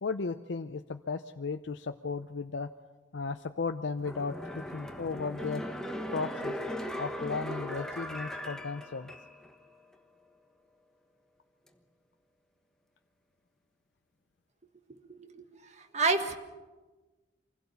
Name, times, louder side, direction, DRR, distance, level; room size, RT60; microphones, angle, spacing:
voice 1, 0.0-2.7 3.1-5.6 6.1-6.6 7.0-9.1, left 4 dB, 70° left, 8 dB, 0.6 m, -35 dB
sound 1, 4.0-9.6 9.9-10.0, equal, 5° left, 1.2 m, -38 dB
voice 2, 15.1-15.4 15.9-16.3, right 3 dB, 40° right, 6 dB, 1.6 m, -28 dB
25.0 x 16.5 x 7.0 m, 1.2 s
head